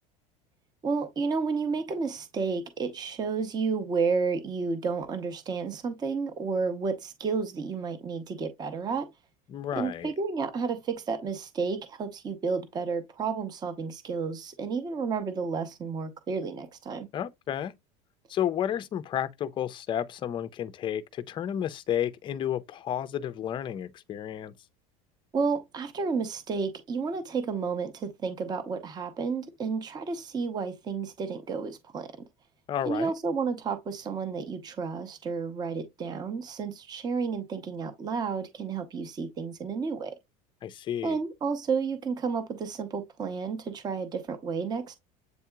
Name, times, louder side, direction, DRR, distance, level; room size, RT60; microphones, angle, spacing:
voice 1, 0.8-9.1 9.8-17.1 25.3-32.1 32.9-40.1 41.0-45.0, right 5 dB, 20° right, 0.7 m, -31 dB
voice 2, 9.5-10.1 17.1-17.7 18.3-24.5 32.7-33.1 40.6-41.2, left 10 dB, 25° left, 0.4 m, -31 dB
8.0 x 2.8 x 2.3 m
supercardioid pair, 140°, 18 cm